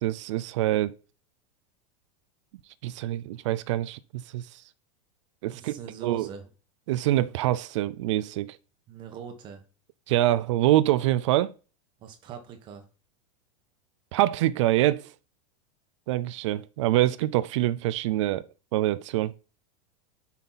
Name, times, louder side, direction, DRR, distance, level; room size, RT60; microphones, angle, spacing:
voice 1, 0.0-0.9 2.8-4.6 5.4-5.8 6.0-6.3 6.9-8.6 10.1-11.5 14.1-15.1 16.1-18.5 18.7-19.3, right 15 dB, 55° right, 0.5 m, -25 dB
voice 2, 5.5-6.5 8.9-9.6 12.0-12.8, right 7 dB, 25° right, 1.3 m, -41 dB
11.0 x 5.7 x 4.1 m
supercardioid pair, 175°, 18 cm